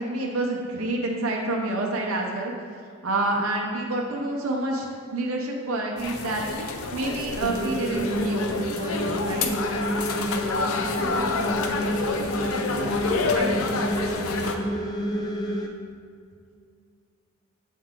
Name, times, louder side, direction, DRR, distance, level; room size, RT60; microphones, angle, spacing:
voice 1, 0.0-2.8 3.0-4.9 5.1-6.4 6.9-9.5 13.3-14.2, right 2 dB, 85° right, 0 dB, 0.7 m, -28 dB
sound 1, 6.0-14.5, left 4 dB, 85° left, 0.5 m, -29 dB
sound 2, 7.4-15.7, equal, 20° left, 0.4 m, -29 dB
voice 2, 10.7-12.1 12.6-13.4, right 1 dB, 30° right, -5 dB, 1.2 m, -38 dB
7.2 x 4.5 x 3.7 m, 2.3 s
head